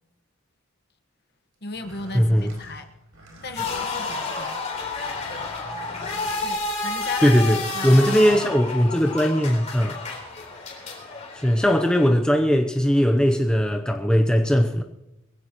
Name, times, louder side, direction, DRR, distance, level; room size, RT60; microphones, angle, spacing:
voice 1, 1.6-2.9 3.4-4.6 6.4-8.2, left 2 dB, 45° left, 1.2 m, -36 dB
sound 1, 1.6-7.3, right 1 dB, 70° right, 4.9 m, -47 dB
voice 2, 2.1-2.5 5.2-5.3 7.2-10.0 11.3-14.8, equal, 5° left, 0.6 m, -19 dB
sound 2, 3.6-12.1, left 3 dB, 30° left, 3.6 m, -31 dB
22.0 x 16.0 x 3.0 m
head